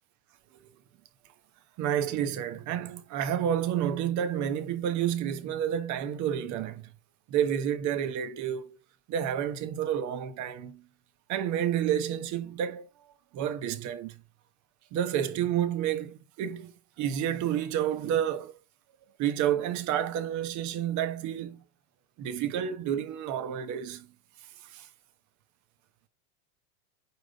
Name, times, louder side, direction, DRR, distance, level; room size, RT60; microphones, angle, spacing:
voice 1, 1.8-6.9 7.3-8.8 9.1-10.8 11.3-12.9 13.3-14.2 14.9-18.5 19.2-21.6 22.2-24.1 24.6-24.9, right 10 dB, 40° right, 1.3 m, -30 dB
9.0 x 3.8 x 4.1 m
supercardioid pair, 120°, 43 cm